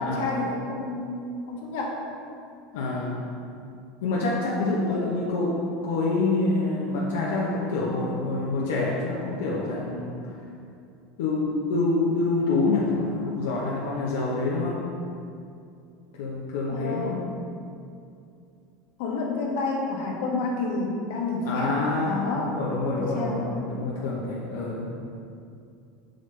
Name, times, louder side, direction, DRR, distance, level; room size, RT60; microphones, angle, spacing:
voice 1, 0.0-2.0 4.9-5.1 16.7-17.2 19.0-21.8 22.0-22.5 22.9-23.4, left 3 dB, 70° left, -1 dB, 1.2 m, -29 dB
voice 2, 2.7-3.2 4.0-10.2 11.2-14.8 16.2-17.2 21.4-24.9, left 3 dB, 90° left, -4 dB, 0.9 m, -27 dB
7.7 x 5.2 x 3.3 m, 2.5 s
supercardioid pair, 145°, 0 cm